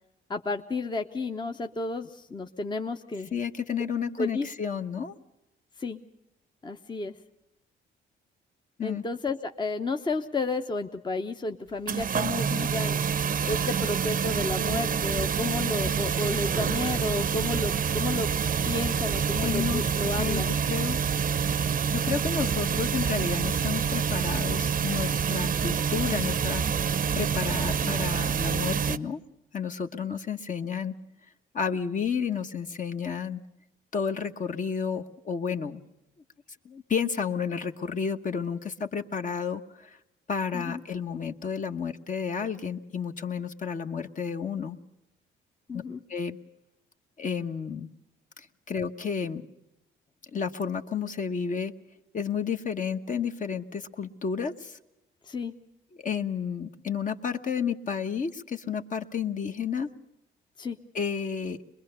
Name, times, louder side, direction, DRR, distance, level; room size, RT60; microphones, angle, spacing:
voice 1, 0.3-3.3 4.2-4.5 5.8-6.0 6.6-7.1 8.8-13.0 13.4-18.3 18.6-20.6 40.5-40.8 45.7-46.0 55.2-55.5 60.6-60.8, left 3 dB, 20° left, 5 dB, 0.9 m, -32 dB
voice 2, 3.3-5.1 8.8-9.0 19.4-21.0 21.5-21.6 21.9-26.6 27.1-29.2 29.5-30.9 31.5-33.4 33.9-35.8 36.6-40.0 40.3-44.8 45.7-45.8 46.1-46.4 47.2-47.9 48.4-49.4 50.3-51.7 52.1-54.8 56.0-59.9 60.9-61.6, left 6 dB, 40° left, 7 dB, 1.2 m, -31 dB
sound 1, 11.9-29.0, right 7 dB, 45° right, 0.7 m, -27 dB
23.0 x 21.5 x 6.8 m, 0.89 s
cardioid pair, 90°, 20 cm